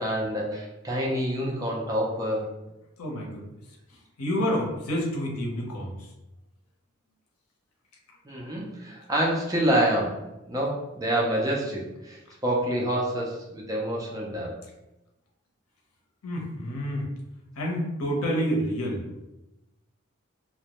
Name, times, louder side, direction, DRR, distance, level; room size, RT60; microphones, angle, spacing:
voice 1, 0.0-2.5 8.3-10.2 10.5-14.6, right 1 dB, 15° right, -2 dB, 0.4 m, -27 dB
voice 2, 3.0-3.4 4.2-6.0 16.2-17.0 17.6-19.0, equal, 90° left, -2 dB, 0.6 m, -28 dB
2.1 x 2.0 x 2.8 m, 0.96 s
head